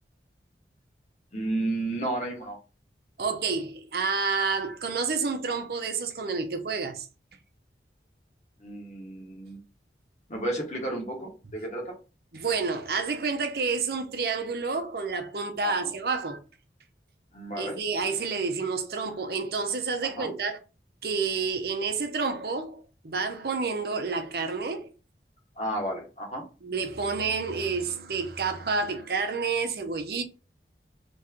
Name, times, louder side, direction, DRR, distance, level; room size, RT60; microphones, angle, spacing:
voice 1, 1.3-2.6 8.6-9.6 10.3-11.9 15.6-15.9 17.3-17.8 20.1-20.3 25.6-26.4, right 1 dB, 40° left, 1.3 m, -32 dB
voice 2, 3.2-7.1 12.3-16.4 17.6-20.6 21.0-24.9 26.6-30.2, right 4 dB, 60° right, 0.6 m, -29 dB
3.0 x 2.9 x 3.6 m
head